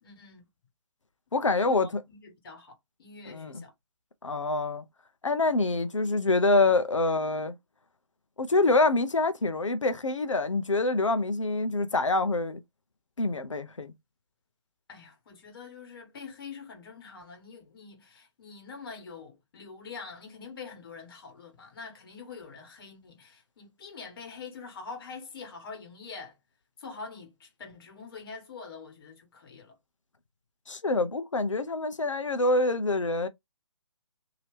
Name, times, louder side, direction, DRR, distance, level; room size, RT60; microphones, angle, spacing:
voice 1, 0.0-0.5 1.6-3.7 14.9-26.4 26.8-29.8, left 5 dB, 50° left, 1.6 m, -45 dB
voice 2, 1.3-2.0 3.3-3.6 4.2-4.8 5.2-7.5 8.4-12.6 13.2-13.9 30.7-33.3, left 2 dB, 85° left, 0.7 m, -26 dB
2.9 x 2.8 x 3.2 m
figure-of-eight pair, 140°, 16 cm